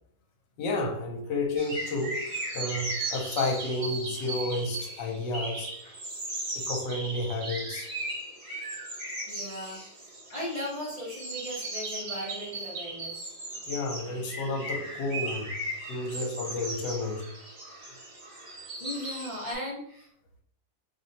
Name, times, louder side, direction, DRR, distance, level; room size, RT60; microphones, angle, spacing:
voice 1, 0.6-2.3 2.5-5.9 6.5-7.9 13.7-15.6 15.9-17.3, left 2 dB, 75° left, 1.4 m, -31 dB
sound 1, 1.6-19.5, right 2 dB, 40° right, 1.1 m, -37 dB
voice 2, 9.3-13.3 18.8-20.1, equal, 40° left, 0.5 m, -37 dB
3.0 x 2.7 x 4.0 m
omnidirectional pair, 2.0 m